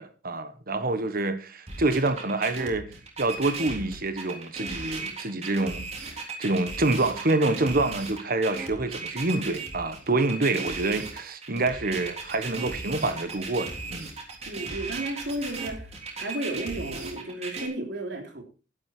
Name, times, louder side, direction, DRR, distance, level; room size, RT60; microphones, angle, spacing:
voice 1, 0.0-2.9 3.2-14.1, right 2 dB, 50° right, 1.5 m, -27 dB
sound 1, 1.7-17.7, right 3 dB, 35° right, 3.5 m, -36 dB
voice 2, 14.5-15.9 16.2-18.4, right 1 dB, 65° right, 3.5 m, -33 dB
12.0 x 11.0 x 4.6 m
head